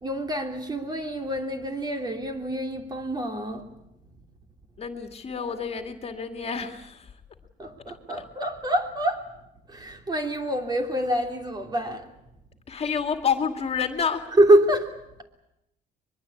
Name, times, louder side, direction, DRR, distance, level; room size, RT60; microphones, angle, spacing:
voice 1, 0.0-3.7 7.6-9.3 9.7-12.1 14.4-14.9, right 1 dB, 25° right, 3.1 m, -25 dB
voice 2, 4.8-7.1 12.7-14.3, left 6 dB, 35° left, 2.3 m, -29 dB
23.5 x 22.5 x 8.5 m
cardioid pair, 110°, 17 cm